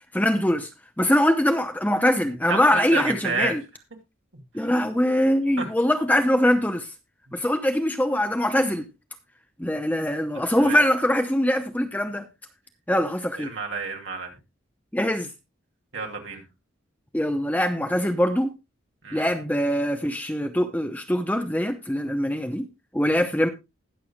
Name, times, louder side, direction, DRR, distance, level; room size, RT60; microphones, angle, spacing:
voice 1, 0.1-0.7 1.0-3.6 4.5-6.9 7.3-8.9 9.6-12.2 12.9-13.5 14.9-15.3 17.1-18.5 19.1-22.7 22.9-23.5, left 1 dB, 10° left, 0.7 m, -23 dB
voice 2, 2.5-3.6 4.6-4.7 5.6-5.7 10.6-10.8 13.4-14.3 15.9-16.4 19.0-19.3, right 4 dB, 65° right, 2.8 m, -30 dB
20.0 x 6.8 x 2.3 m
head